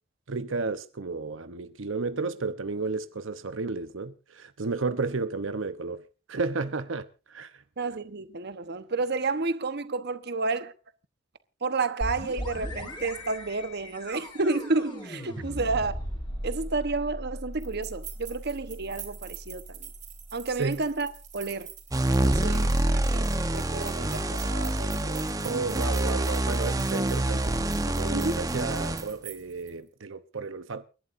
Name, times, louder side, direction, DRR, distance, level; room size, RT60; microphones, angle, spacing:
voice 1, 0.3-7.6 20.6-20.8 25.4-27.6 27.9-30.8, right 4 dB, 85° right, 0.9 m, -32 dB
voice 2, 7.8-10.7 11.6-16.0 16.4-19.9 20.3-21.7 22.2-23.3 23.5-25.3 28.1-28.4, right 3 dB, 60° right, 1.1 m, -31 dB
sound 1, 12.0-21.6, equal, 25° left, 5.3 m, -38 dB
sound 2, 17.6-29.7, right 11 dB, 40° right, 3.7 m, -47 dB
sound 3, 21.9-29.1, right 1 dB, 20° right, 1.0 m, -26 dB
29.5 x 11.5 x 2.6 m
head